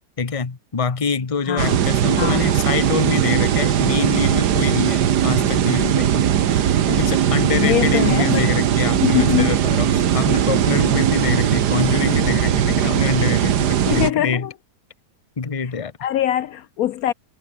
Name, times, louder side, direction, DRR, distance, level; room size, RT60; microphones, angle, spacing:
voice 1, 0.2-6.3 6.9-14.5 15.4-15.9, left 5 dB, 25° left, 1.0 m, -25 dB
voice 2, 1.5-1.8 2.2-2.6 6.6-7.0 7.5-8.5 9.0-9.6 13.9-14.5 16.0-17.1, left 12 dB, 70° left, 1.0 m, -23 dB
sound 1, 1.6-14.1, right 10 dB, 80° right, 1.7 m, -19 dB
omnidirectional pair, 1.7 m